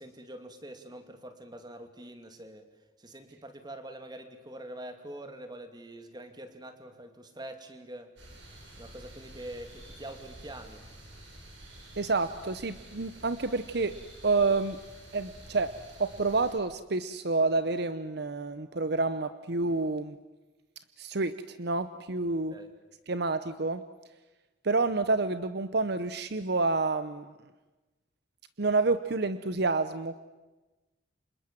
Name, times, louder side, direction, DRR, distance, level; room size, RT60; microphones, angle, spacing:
voice 1, 0.0-2.7 3.0-8.1 8.8-10.8 22.5-22.7, right 1 dB, 25° right, 7 dB, 2.6 m, -45 dB
sound 1, 8.2-16.6, right 1 dB, 85° right, 7.0 m, -50 dB
voice 2, 12.0-13.9 14.2-14.8 15.1-15.7 16.0-20.2 21.0-22.5 23.1-23.8 24.6-27.3 28.6-30.2, right 3 dB, 60° right, 12 dB, 0.9 m, -28 dB
29.0 x 26.5 x 7.6 m, 1.2 s
head